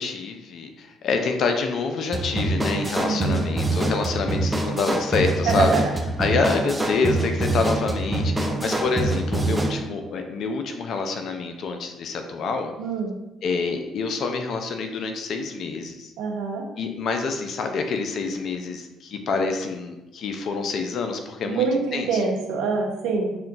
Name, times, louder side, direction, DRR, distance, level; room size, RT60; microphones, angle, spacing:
voice 1, 0.0-5.7 6.2-12.7 13.4-16.1 16.8-21.6 21.9-22.2, left 4 dB, 60° left, 5 dB, 0.4 m, -27 dB
sound 1, 2.1-9.8, right 2 dB, 15° right, 0.5 m, -25 dB
voice 2, 3.0-3.4 5.4-5.9 8.4-8.7 12.8-13.2 16.2-16.6 21.4-23.4, right 4 dB, 75° right, 2 dB, 0.6 m, -25 dB
5.6 x 2.2 x 2.5 m, 0.99 s
hypercardioid pair, 55°, 0 cm